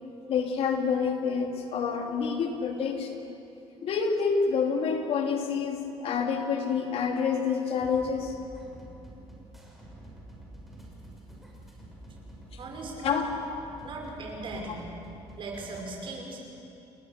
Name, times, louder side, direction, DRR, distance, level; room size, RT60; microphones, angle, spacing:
voice 1, 0.3-3.2 3.8-8.3 13.0-13.3, left 6 dB, 60° left, 3 dB, 2.8 m, -28 dB
sound 1, 7.8-15.8, right 1 dB, ahead, 6.5 m, -48 dB
voice 2, 12.6-13.2 13.8-14.9 15.4-16.4, right 2 dB, 50° right, 1 dB, 5.8 m, -38 dB
28.5 x 20.0 x 7.3 m, 2.8 s
cardioid pair, 120°, 11 cm